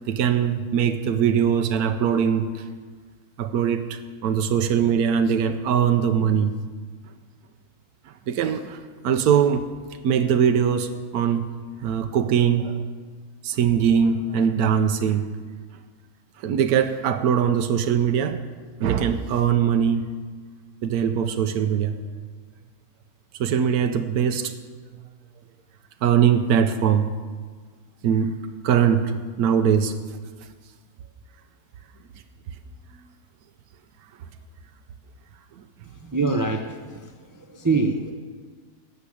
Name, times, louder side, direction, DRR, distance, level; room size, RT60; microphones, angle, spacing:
voice 1, 0.1-2.7 3.4-6.5 8.1-9.7 10.0-11.5 11.8-12.8 13.4-15.3 16.4-18.4 18.8-20.1 20.8-22.0 23.3-24.5 25.0-25.1 26.0-27.1 28.0-28.4 28.6-29.1 29.4-29.9 35.6-35.7, right 8 dB, 90° right, 8 dB, 1.2 m, -21 dB
voice 2, 36.0-37.1 37.5-38.1, right 3 dB, 30° right, 4 dB, 0.3 m, -24 dB
12.5 x 6.3 x 8.4 m, 1.5 s
omnidirectional pair, 1.6 m